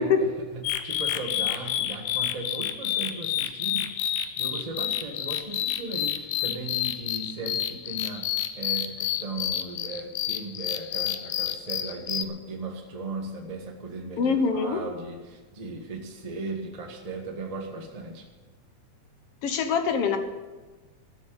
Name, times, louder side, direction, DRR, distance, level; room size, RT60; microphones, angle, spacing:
voice 1, 0.0-18.3, right 2 dB, 20° right, 1 dB, 0.9 m, -37 dB
sound 1, 0.6-12.3, left 11 dB, 75° left, 1.9 m, -29 dB
voice 2, 14.2-14.8 19.4-20.2, left 5 dB, 60° left, 7 dB, 1.9 m, -24 dB
13.5 x 7.5 x 9.0 m, 1.3 s
omnidirectional pair, 3.5 m